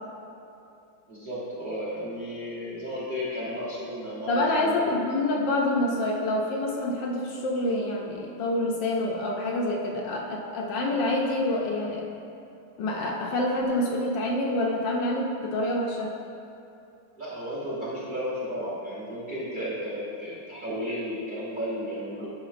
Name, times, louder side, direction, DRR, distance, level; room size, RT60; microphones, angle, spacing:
voice 1, 1.1-4.9 17.2-22.3, equal, 30° right, -7 dB, 1.1 m, -33 dB
voice 2, 4.3-12.0 12.8-16.1, left 1 dB, 70° left, -1 dB, 1.3 m, -27 dB
11.0 x 4.7 x 2.5 m, 2.6 s
omnidirectional pair, 2.2 m